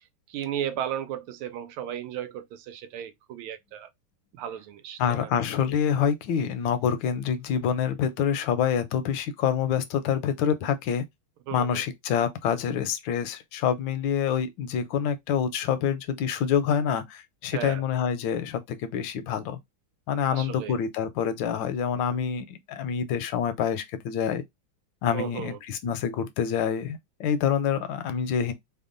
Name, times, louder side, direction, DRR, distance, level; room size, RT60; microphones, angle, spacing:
voice 1, 0.3-3.9 4.3-5.3 11.5-11.9 17.5-17.8 20.3-20.8 25.1-25.6, right 10 dB, 85° right, 1.5 m, -35 dB
voice 2, 5.0-11.0 11.5-19.6 20.1-24.4 25.0-28.5, left 8 dB, 75° left, 1.2 m, -27 dB
3.5 x 2.2 x 3.7 m
omnidirectional pair, 2.3 m